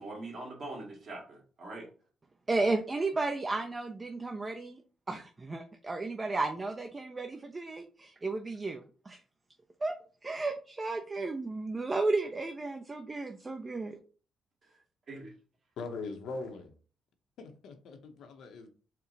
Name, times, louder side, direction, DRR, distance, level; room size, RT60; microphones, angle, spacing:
voice 1, 0.0-1.9 15.1-15.3, right 2 dB, 50° right, 1.7 m, -42 dB
voice 2, 2.5-4.8 5.1-9.2 9.8-9.9 10.2-14.0, right 3 dB, 25° right, 0.4 m, -33 dB
voice 3, 15.8-16.7 17.4-18.7, left 3 dB, 75° left, 0.7 m, -41 dB
4.3 x 2.0 x 3.9 m
cardioid pair, 90°, 0 cm